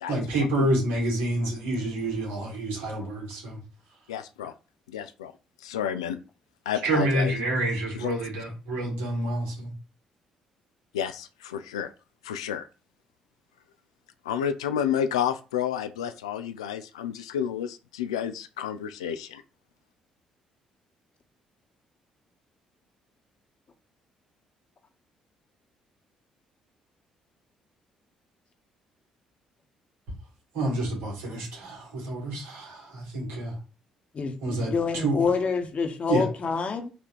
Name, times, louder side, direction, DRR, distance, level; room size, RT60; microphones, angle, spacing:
voice 1, 0.1-3.6 6.8-9.7 30.5-33.6 34.4-35.2 36.1-36.3, right 1 dB, 70° right, -2 dB, 1.9 m, -28 dB
voice 2, 4.1-4.5 4.9-5.3 5.6-6.2 6.7-7.3 7.9-8.2 10.9-11.9 12.2-12.7 14.3-19.4, left 9 dB, 85° left, 9 dB, 0.3 m, -30 dB
voice 3, 34.1-36.9, left 5 dB, 45° left, 5 dB, 1.1 m, -27 dB
4.2 x 2.7 x 4.5 m, 0.33 s
hypercardioid pair, 45°, 3 cm